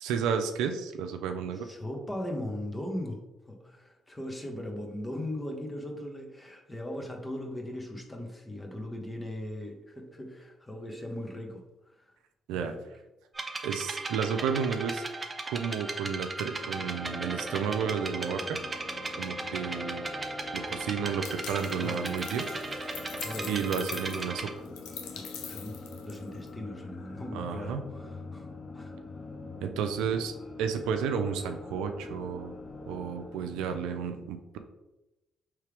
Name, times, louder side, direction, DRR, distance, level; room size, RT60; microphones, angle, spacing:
voice 1, 0.0-1.7 12.5-12.7 13.6-15.0 15.4-18.6 19.2-20.1 20.5-23.0 23.4-24.5 27.3-27.8 29.6-32.5 32.9-34.6, right 7 dB, 85° right, 6 dB, 0.4 m, -32 dB
voice 2, 1.6-11.6 11.9-12.1 12.5-12.8 21.8-22.0 23.2-23.6 25.1-25.8 26.0-28.5 28.7-29.2, left 1 dB, 20° left, 2 dB, 1.1 m, -39 dB
sound 1, 13.4-24.5, right 3 dB, 30° right, 0.7 m, -37 dB
sound 2, 16.5-33.7, left 3 dB, 50° left, 0.8 m, -44 dB
sound 3, 21.2-26.5, left 8 dB, 85° left, 0.5 m, -44 dB
4.6 x 3.2 x 3.4 m, 0.99 s
supercardioid pair, 65°, 0 cm